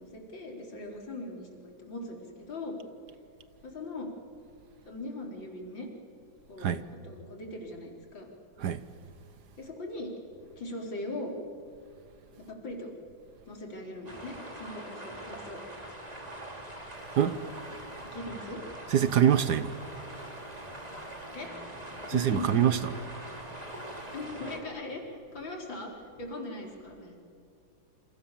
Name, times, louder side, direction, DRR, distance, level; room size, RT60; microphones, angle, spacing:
voice 1, 0.0-2.8 3.6-4.1 4.9-5.9 6.5-6.7 7.0-8.3 9.6-10.1 10.6-11.3 12.5-12.9 13.5-15.6 18.1-18.6 21.3-21.5 22.1-22.6 24.1-27.2, left 2 dB, 70° left, 4.9 m, -40 dB
sound 1, 14.0-24.6, right 1 dB, 20° right, 3.4 m, -43 dB
voice 2, 18.9-19.7 22.1-22.8, right 9 dB, 60° right, 1.4 m, -24 dB
28.5 x 27.0 x 7.4 m
omnidirectional pair, 2.1 m